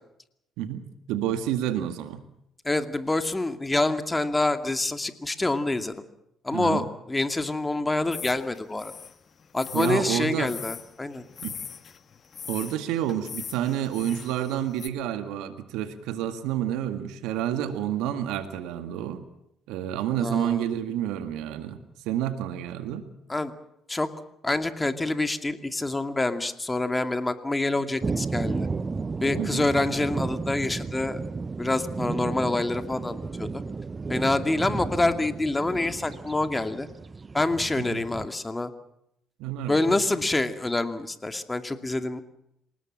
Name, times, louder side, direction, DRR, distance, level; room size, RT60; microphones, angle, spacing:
voice 1, 1.1-2.2 6.5-6.9 9.7-10.5 11.4-11.6 12.5-19.2 19.7-21.8 22.1-23.1 29.4-29.7 37.8-38.1 39.4-40.0, right 11 dB, 75° right, 10 dB, 1.9 m, -29 dB
voice 2, 2.6-6.0 6.4-8.9 9.5-11.2 20.2-20.6 23.3-23.5 23.9-24.1 24.4-28.7 29.2-31.2 31.6-33.6 34.1-36.9 37.3-38.7 39.7-42.2, left 2 dB, 20° left, 8 dB, 2.4 m, -26 dB
sound 1, 8.1-14.9, left 7 dB, 50° left, 1.8 m, -41 dB
sound 2, 28.0-38.3, right 4 dB, 35° right, 0.9 m, -33 dB
27.5 x 18.5 x 7.5 m, 0.79 s
hypercardioid pair, 45°, 0 cm